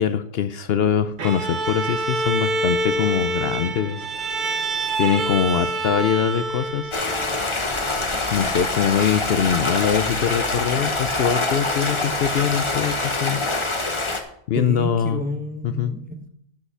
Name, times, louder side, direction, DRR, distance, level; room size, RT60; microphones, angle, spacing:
voice 1, 0.0-4.0 5.0-6.9 8.3-13.4 14.5-15.2 15.6-15.9, left 8 dB, 65° left, 11 dB, 0.8 m, -23 dB
Bowed string instrument, 1.2-7.5, right 2 dB, 50° right, 1.0 m, -26 dB
Stream, 6.9-14.2, left 2 dB, 30° left, 1.1 m, -25 dB
voice 2, 14.6-16.3, equal, 10° right, 4 dB, 1.1 m, -30 dB
12.5 x 5.8 x 5.5 m, 0.69 s
omnidirectional pair, 1.1 m